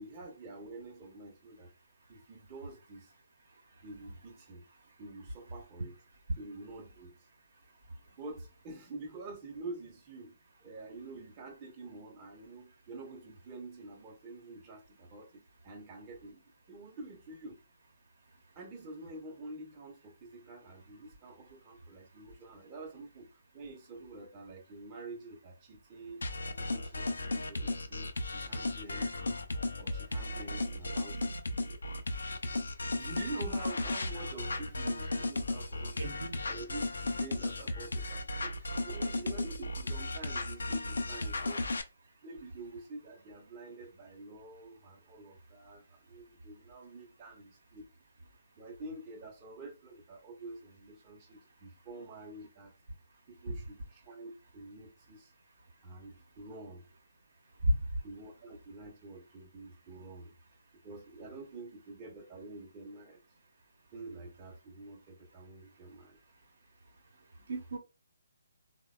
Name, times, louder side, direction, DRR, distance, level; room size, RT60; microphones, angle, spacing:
voice 1, 0.0-1.7 2.1-3.1 3.8-4.7 5.0-6.0 6.4-7.3 8.2-17.6 18.6-26.2 26.5-29.4 29.7-31.3 33.0-36.2 36.4-41.7 42.2-47.9 48.6-52.7 53.3-55.3 55.8-56.9 58.0-60.3 60.8-63.2 63.9-66.2, right 2 dB, 25° right, 0.6 m, -47 dB
sound 1, 26.2-41.8, left 2 dB, 70° left, 0.4 m, -35 dB
voice 2, 36.0-36.4 57.6-57.8 67.5-67.8, equal, 60° right, 0.7 m, -30 dB
3.3 x 2.1 x 2.2 m
figure-of-eight pair, 140°, 0 cm